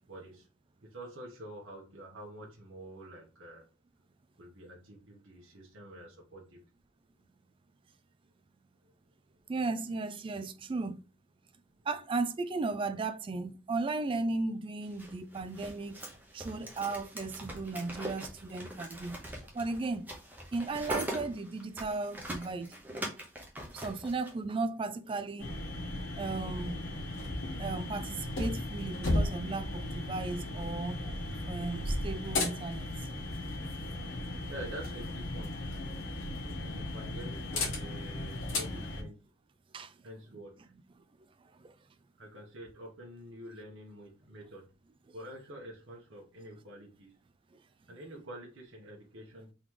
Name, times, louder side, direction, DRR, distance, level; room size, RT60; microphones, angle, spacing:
voice 1, 0.1-0.5 0.8-3.7 4.4-6.6 34.4-35.6 36.5-39.2 40.0-40.7 42.2-44.6 45.1-47.1 47.9-49.5, right 1 dB, 65° right, 1.1 m, -47 dB
voice 2, 9.5-11.0 11.8-16.0 16.3-19.2 19.5-20.1 20.5-22.7 23.7-25.5 26.2-26.8 27.6-31.0 31.5-32.9 39.7-39.9 41.6-41.7 47.5-47.6, right 3 dB, 25° right, 0.3 m, -35 dB
sound 1, 14.9-24.3, right 1 dB, 10° right, 0.9 m, -42 dB
sound 2, 25.4-39.0, left 1 dB, 70° left, 1.8 m, -35 dB
3.9 x 3.1 x 3.7 m
head